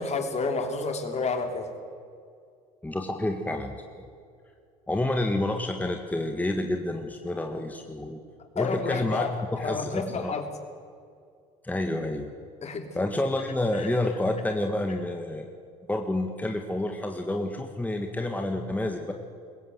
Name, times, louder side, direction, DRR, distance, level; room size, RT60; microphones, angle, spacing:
voice 1, 0.0-1.7 8.6-9.3 9.6-10.5 12.6-12.9 13.8-13.9, left 4 dB, 40° left, 5 dB, 3.2 m, -30 dB
voice 2, 2.8-4.1 4.9-8.2 8.6-10.3 11.6-12.3 12.9-15.5 15.9-19.1, left 1 dB, 10° left, 4 dB, 1.8 m, -29 dB
21.0 x 16.5 x 8.1 m, 2.3 s
hypercardioid pair, 75°, 18 cm